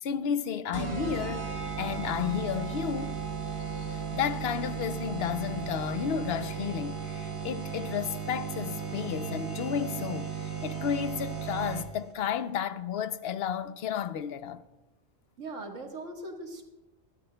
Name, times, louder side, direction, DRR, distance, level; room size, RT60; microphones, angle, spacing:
voice 1, 0.0-3.2 3.7-14.6, left 8 dB, 60° left, 0.8 m, -32 dB
sound 1, 0.7-12.1, right 6 dB, 25° right, 1.0 m, -35 dB
voice 2, 15.4-16.6, right 2 dB, 70° right, 1.8 m, -40 dB
23.0 x 12.5 x 2.2 m
omnidirectional pair, 1.3 m